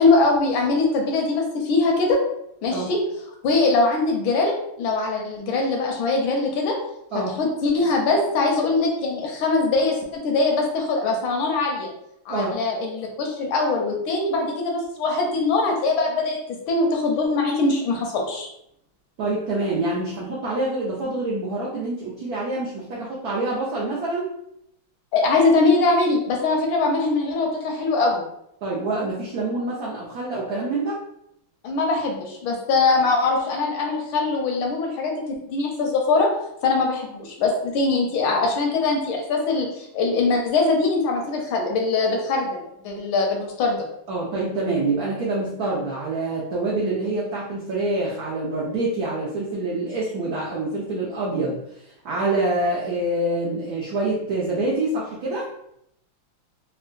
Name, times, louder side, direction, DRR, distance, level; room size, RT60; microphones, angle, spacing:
voice 1, 0.0-2.2 2.6-3.0 3.4-6.8 7.1-11.9 12.3-18.5 25.1-28.2 31.6-35.1 35.5-36.3 36.6-43.8, left 3 dB, 75° left, 1 dB, 1.3 m, -22 dB
voice 2, 19.2-24.3 28.6-31.0 44.1-55.5, right 2 dB, 85° right, -4 dB, 0.8 m, -26 dB
3.6 x 2.2 x 2.4 m, 0.76 s
omnidirectional pair, 2.3 m